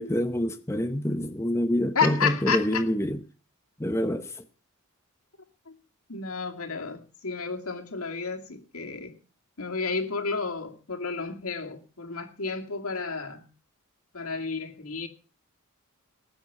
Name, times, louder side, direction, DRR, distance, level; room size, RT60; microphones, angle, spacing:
voice 1, 0.0-3.2 3.8-4.4, left 1 dB, 10° left, 0.9 m, -26 dB
voice 2, 2.0-2.8 6.1-9.1 9.6-13.5 14.1-15.1, left 5 dB, 75° left, 2.4 m, -31 dB
20.0 x 9.1 x 5.8 m
head